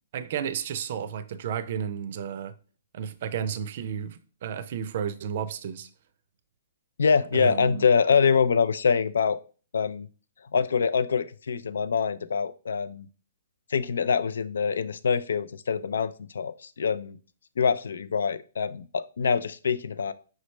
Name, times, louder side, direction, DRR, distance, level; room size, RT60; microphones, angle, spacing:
voice 1, 0.1-2.5 2.9-5.9 7.3-7.9, right 8 dB, 50° right, 0.4 m, -32 dB
voice 2, 7.0-9.4 9.7-10.1 10.5-13.1 13.7-17.2 17.6-20.1, left 6 dB, 90° left, 0.3 m, -25 dB
5.1 x 3.1 x 3.1 m
hypercardioid pair, 165°, 0 cm